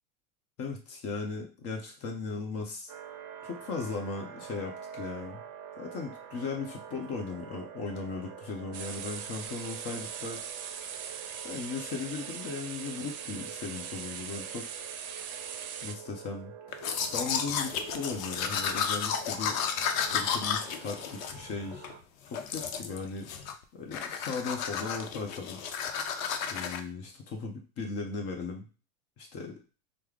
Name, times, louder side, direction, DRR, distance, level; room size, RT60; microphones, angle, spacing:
voice 1, 0.6-2.9 3.4-5.5 5.8-10.4 11.4-14.7 15.8-16.5 17.1-19.6 20.1-21.9 22.3-23.3 23.7-25.6 26.5-28.7 29.2-29.6, left 4 dB, 35° left, 2 dB, 0.8 m, -37 dB
sound 1, 2.9-22.0, right 8 dB, 35° right, 0.6 m, -47 dB
sound 2, 8.7-15.9, right 8 dB, 80° right, 0.6 m, -41 dB
Domestic sounds home sounds, 16.7-21.9 22.3-23.0 23.3-23.6 23.9-26.8, left 7 dB, 70° left, 0.6 m, -33 dB
3.3 x 2.0 x 3.4 m, 0.35 s
hypercardioid pair, 100°, 43 cm